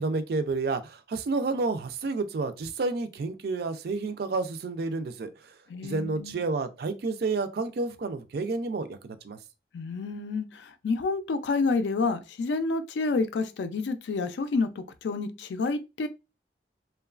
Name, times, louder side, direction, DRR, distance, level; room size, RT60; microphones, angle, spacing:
voice 1, 0.0-5.5 5.8-9.4, right 3 dB, 60° right, 0.4 m, -30 dB
voice 2, 5.7-6.4 9.7-16.1, left 3 dB, 75° left, 0.4 m, -29 dB
3.0 x 2.2 x 2.3 m
head